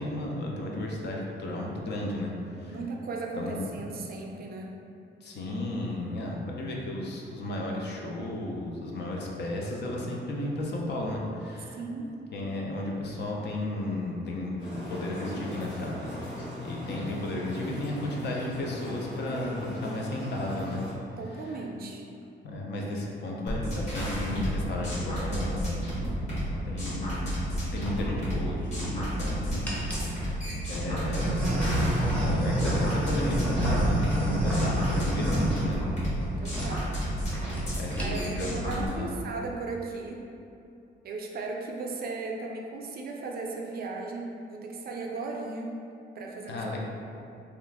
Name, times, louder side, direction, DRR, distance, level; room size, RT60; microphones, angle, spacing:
voice 1, 0.0-2.8 3.4-3.8 5.2-11.8 12.3-16.1 16.6-20.8 21.3-21.6 22.4-26.1 26.6-27.4 27.7-30.3 30.7-31.6 32.2-35.8 36.4-36.5 37.0-37.4 37.7-39.2 46.5-46.8, left 1 dB, 60° left, -1 dB, 0.5 m, -34 dB
voice 2, 2.7-4.7 11.7-12.2 21.2-22.0 25.8-26.2 36.4-37.0 38.0-40.2 41.0-45.8 46.1-46.6, right 3 dB, 50° right, 0 dB, 0.4 m, -36 dB
sound 1, 14.6-20.9, left 2 dB, 90° left, 1.2 m, -39 dB
sound 2, 23.5-38.9, equal, 35° left, 1.2 m, -32 dB
sound 3, 27.5-27.9 28.6-29.2 29.6-30.1 30.8-36.3 36.5-36.7 37.0-37.1 37.3-37.6 37.9-38.4, right 1 dB, 5° left, 0.6 m, -28 dB
2.9 x 2.4 x 3.4 m, 2.7 s
wide cardioid pair, 145°, 19 cm